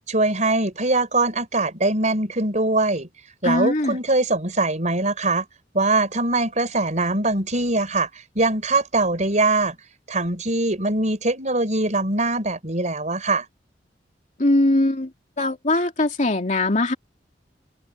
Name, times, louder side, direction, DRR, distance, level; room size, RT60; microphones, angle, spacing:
voice 1, 0.1-3.1 3.4-5.5 5.7-9.8 10.1-13.4, right 2 dB, 45° right, 5.3 m, -22 dB
voice 2, 3.4-4.0 14.4-15.1 15.4-16.9, left 2 dB, 45° left, 2.7 m, -21 dB
head